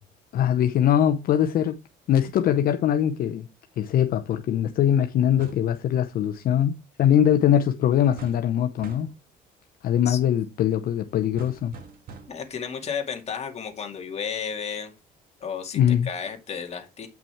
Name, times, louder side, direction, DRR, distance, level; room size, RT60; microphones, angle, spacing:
voice 1, 0.3-1.8 2.1-3.5 3.8-9.1 9.8-11.7 15.7-16.1, left 10 dB, 60° left, 0.8 m, -22 dB
sound 1, 5.4-5.8 8.2-8.5 8.8-9.2 11.4-12.5, right 5 dB, 60° right, 2.0 m, -44 dB
voice 2, 12.3-14.9 15.4-17.1, left 6 dB, 40° left, 2.3 m, -33 dB
8.7 x 5.9 x 4.6 m
cardioid pair, 110°, 17 cm